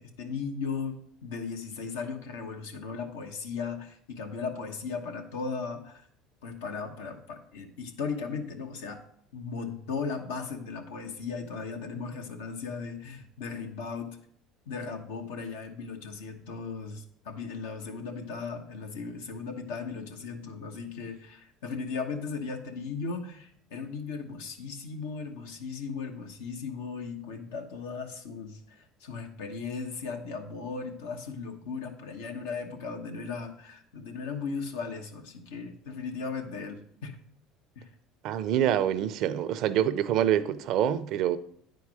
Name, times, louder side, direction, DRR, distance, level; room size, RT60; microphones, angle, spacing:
voice 1, 0.0-6.0 6.4-9.0 9.3-14.2 14.7-37.2 37.8-37.9, left 5 dB, 90° left, 1.1 m, -37 dB
voice 2, 38.2-41.4, right 10 dB, 65° right, 0.5 m, -26 dB
9.3 x 4.6 x 4.8 m
supercardioid pair, 95°, 0 cm